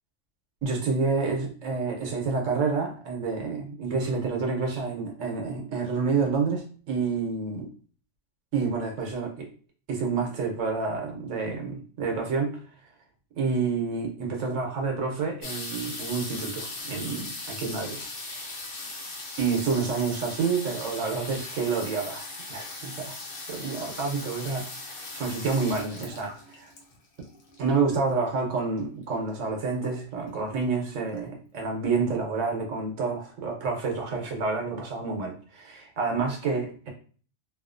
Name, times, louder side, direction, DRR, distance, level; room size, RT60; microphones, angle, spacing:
voice 1, 0.6-7.7 8.5-9.5 9.9-12.6 13.4-18.5 19.4-23.2 23.5-24.7 25.1-26.7 27.6-36.9, right 4 dB, 85° right, 2 dB, 1.1 m, -29 dB
sound 1, 15.4-28.0 28.8-28.9 29.1-29.5 29.8-30.4 30.9-31.0 31.2-31.3, left 2 dB, 80° left, 1.1 m, -39 dB
2.7 x 2.4 x 2.4 m, 0.42 s
omnidirectional pair, 1.3 m